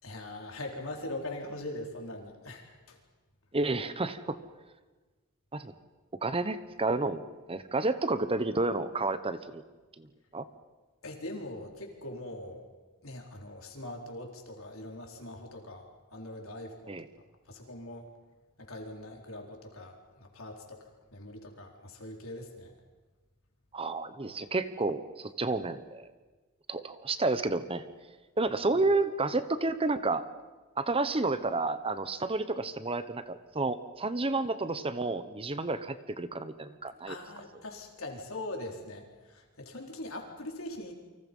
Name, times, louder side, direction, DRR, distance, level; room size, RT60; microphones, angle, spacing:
voice 1, 0.0-3.0 11.0-12.7 13.0-16.9 17.5-18.1 18.6-20.8 21.1-22.7 37.1-40.9, left 1 dB, 65° left, 2 dB, 4.3 m, -42 dB
voice 2, 3.5-4.4 5.5-5.7 6.2-9.6 10.0-10.1 10.3-10.5 16.9-17.0 23.7-26.1 26.7-27.9 28.4-30.2 30.8-37.1, right 3 dB, 25° right, 12 dB, 1.0 m, -30 dB
29.5 x 25.0 x 5.5 m, 1.3 s
head